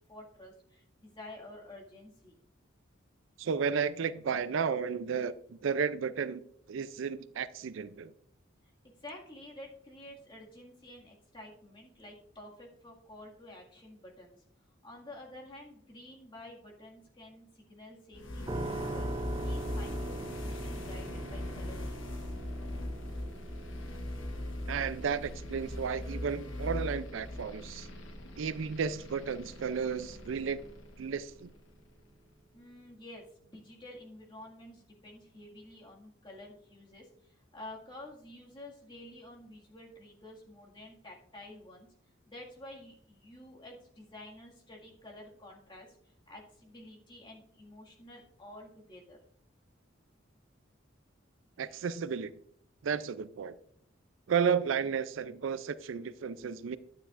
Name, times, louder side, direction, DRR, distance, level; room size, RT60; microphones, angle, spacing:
voice 1, 0.1-2.4 8.8-14.4 14.8-22.3 32.5-41.9 42.3-49.3 51.7-51.8, left 1 dB, 25° left, 1.9 m, -50 dB
voice 2, 3.4-6.4 6.7-8.1 24.7-27.9 28.4-30.6 31.0-31.5 51.6-52.3 52.8-53.6 54.3-56.8, right 6 dB, 80° right, 0.4 m, -33 dB
sound 1, 18.1-32.0, left 1 dB, 85° left, 1.3 m, -40 dB
sound 2, 18.5-31.3, right 2 dB, 25° right, 0.5 m, -45 dB
11.0 x 9.4 x 2.5 m
head